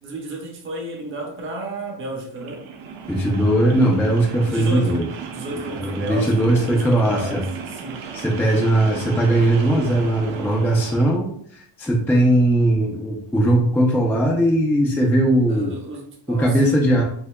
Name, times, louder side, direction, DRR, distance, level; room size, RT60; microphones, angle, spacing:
voice 1, 0.0-2.7 4.4-8.1 15.5-16.6, right 2 dB, 25° right, -1 dB, 0.7 m, -32 dB
sound 1, 2.3-11.2, right 6 dB, 85° right, 0.7 m, -35 dB
voice 2, 3.1-5.1 5.7-7.4 8.1-15.7 16.3-17.0, right 1 dB, 5° left, -1 dB, 0.4 m, -19 dB
4.5 x 2.7 x 2.2 m, 0.63 s
cardioid pair, 140°, 47 cm